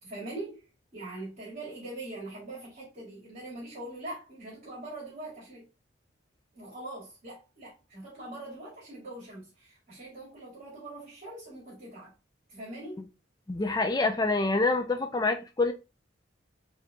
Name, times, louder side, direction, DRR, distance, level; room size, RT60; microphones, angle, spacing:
voice 1, 0.0-0.6 0.9-5.7 6.5-12.1 12.5-13.1, right 2 dB, 40° right, 2.0 m, -42 dB
voice 2, 13.5-15.7, left 3 dB, 20° left, 0.4 m, -26 dB
4.7 x 2.8 x 2.2 m
head